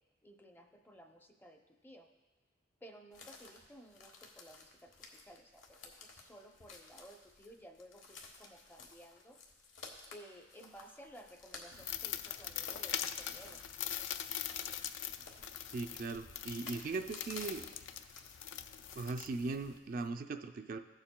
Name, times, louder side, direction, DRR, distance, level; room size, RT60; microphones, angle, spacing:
voice 1, 0.2-2.1 2.8-9.4 10.1-14.3, equal, 10° left, 4 dB, 0.5 m, -56 dB
sound 1, 3.1-20.1, left 4 dB, 90° left, 1.2 m, -55 dB
sound 2, 11.7-19.8, left 10 dB, 70° left, 0.4 m, -42 dB
voice 2, 15.7-17.6 18.9-20.8, right 3 dB, 45° right, 6 dB, 0.3 m, -39 dB
15.5 x 7.2 x 2.2 m, 1.2 s
head